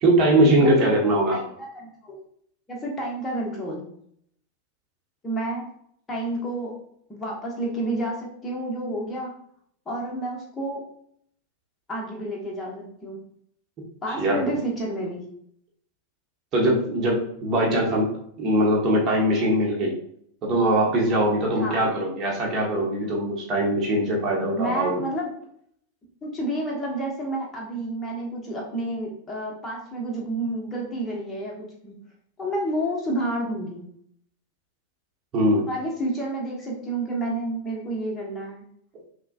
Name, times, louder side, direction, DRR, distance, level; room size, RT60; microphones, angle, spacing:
voice 1, 0.0-1.4 14.2-14.5 16.5-18.1 18.4-19.9 20.4-25.0 35.3-35.7, right 1 dB, 30° right, -2 dB, 1.1 m, -21 dB
voice 2, 0.6-1.0 1.3-2.2 2.7-3.9 5.2-5.7 6.1-6.7 7.1-9.3 9.9-10.8 11.9-13.2 14.0-15.3 21.5-21.9 24.5-25.3 26.2-31.9 32.4-33.9 35.7-38.7, right 1 dB, 15° left, -3 dB, 1.1 m, -30 dB
5.8 x 2.2 x 2.4 m, 0.69 s
figure-of-eight pair, 90°, 0 cm